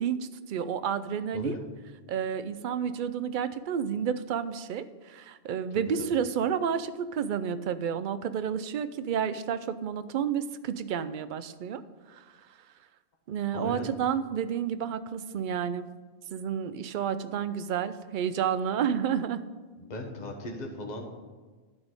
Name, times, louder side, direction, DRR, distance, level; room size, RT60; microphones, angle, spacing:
voice 1, 0.0-1.6 2.1-11.8 12.1-12.2 13.3-15.9 16.3-19.4, right 8 dB, 60° right, 13 dB, 0.6 m, -30 dB
voice 2, 5.7-6.1 13.5-13.9 19.8-21.0, left 2 dB, 40° left, 1 dB, 1.3 m, -37 dB
12.5 x 4.1 x 8.0 m, 1.4 s
omnidirectional pair, 1.1 m